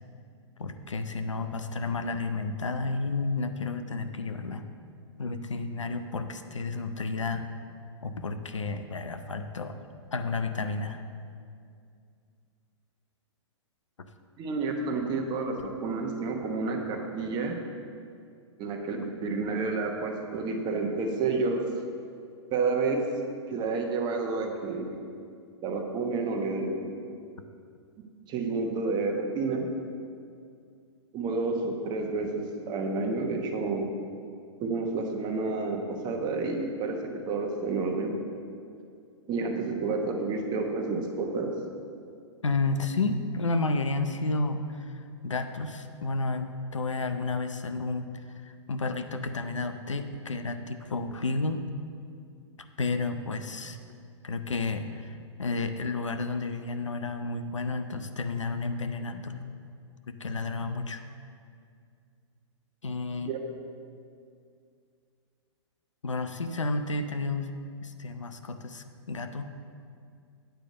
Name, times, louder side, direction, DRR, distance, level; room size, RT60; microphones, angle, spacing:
voice 1, 0.6-4.6 5.2-7.5 8.0-9.8 10.1-11.0 42.4-48.1 48.4-51.6 52.8-53.8 54.2-59.5 60.1-61.0 62.8-63.3 66.0-67.5 67.8-69.5, left 3 dB, 90° left, 8 dB, 0.6 m, -31 dB
voice 2, 14.4-17.5 18.6-21.7 22.5-23.0 23.5-25.0 25.6-26.9 28.3-29.7 31.1-33.9 34.6-38.2 39.3-41.5 63.3-63.4, right 3 dB, 30° right, 3 dB, 1.1 m, -30 dB
9.1 x 5.0 x 6.7 m, 2.3 s
hypercardioid pair, 115°, 15 cm